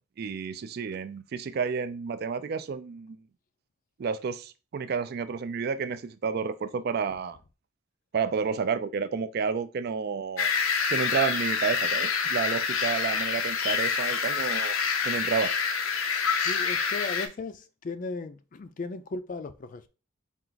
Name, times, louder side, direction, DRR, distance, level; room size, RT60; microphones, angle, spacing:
voice 1, 0.2-3.2 4.0-7.4 8.1-10.5 10.9-14.8 15.0-15.5, right 6 dB, 50° right, 0.3 m, -30 dB
sound 1, 10.4-17.3, left 6 dB, 85° left, 0.6 m, -27 dB
voice 2, 16.3-19.9, left 3 dB, 40° left, 0.4 m, -36 dB
4.4 x 2.4 x 3.9 m
head